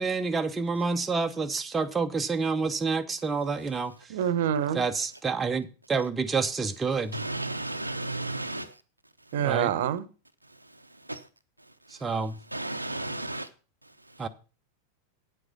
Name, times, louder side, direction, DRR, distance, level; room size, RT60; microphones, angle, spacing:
voice 1, 0.0-3.9 4.7-7.2 9.4-9.7 11.9-12.4 14.2-14.3, right 4 dB, 15° right, 0.8 m, -28 dB
voice 2, 4.1-4.8 9.3-10.1, right 9 dB, 55° right, 0.9 m, -26 dB
voice 3, 7.1-8.8 10.5-11.3 11.9-12.1 12.5-13.5 13.8-14.3, right 2 dB, 85° right, 0.7 m, -35 dB
9.1 x 8.0 x 5.5 m
figure-of-eight pair, 90°, 0 cm